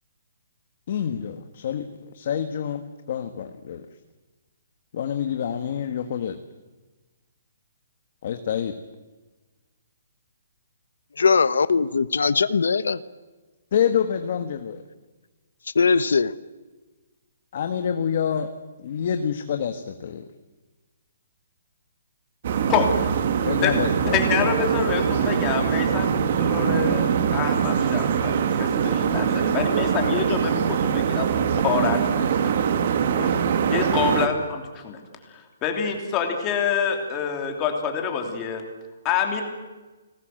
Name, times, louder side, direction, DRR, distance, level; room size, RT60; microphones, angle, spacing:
voice 1, 0.9-2.8 3.1-3.9 4.9-6.4 8.2-8.7 13.7-14.8 17.5-18.5 18.8-20.2 23.5-24.5, left 8 dB, 35° left, 1.3 m, -27 dB
voice 2, 11.2-13.0 15.7-16.3, left 5 dB, 90° left, 1.1 m, -20 dB
sound 1, 22.4-34.3, right 7 dB, 35° right, 1.8 m, -23 dB
voice 3, 24.1-31.3 31.6-32.2 33.2-33.3 33.7-35.0 35.6-38.6 39.0-39.4, left 7 dB, 15° left, 2.9 m, -26 dB
30.0 x 19.5 x 7.7 m
hypercardioid pair, 180°, 0 cm